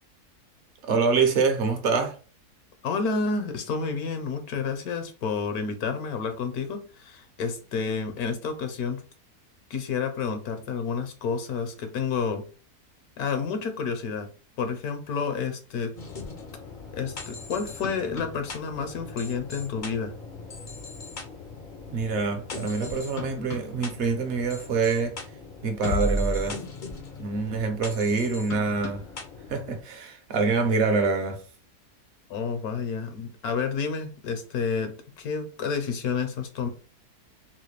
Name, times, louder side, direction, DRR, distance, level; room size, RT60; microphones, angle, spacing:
voice 1, 0.9-2.2 21.9-25.1 25.6-26.6 27.2-29.0 29.5-31.4, right 4 dB, 55° right, 0.9 m, -25 dB
voice 2, 2.8-9.0 9.7-12.4 13.2-14.3 14.6-15.9 16.9-20.1 32.3-34.9 35.2-36.7, left 5 dB, 70° left, 1.1 m, -30 dB
sound 1, 16.0-29.8, left 2 dB, 55° left, 0.5 m, -37 dB
4.0 x 2.1 x 3.1 m
omnidirectional pair, 1.7 m